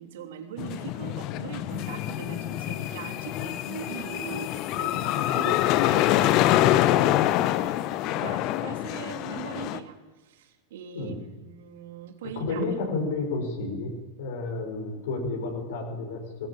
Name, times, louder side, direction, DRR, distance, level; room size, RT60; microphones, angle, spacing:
voice 1, 0.0-11.1 11.4-12.7, right 9 dB, 55° right, 6 dB, 3.3 m, -41 dB
sound 1, 0.6-9.8, left 14 dB, 40° left, 1.2 m, -25 dB
voice 2, 12.4-13.9 14.2-16.5, left 3 dB, 55° left, 2 dB, 5.8 m, -31 dB
22.0 x 21.0 x 8.9 m, 1.2 s
figure-of-eight pair, 90°, 0 cm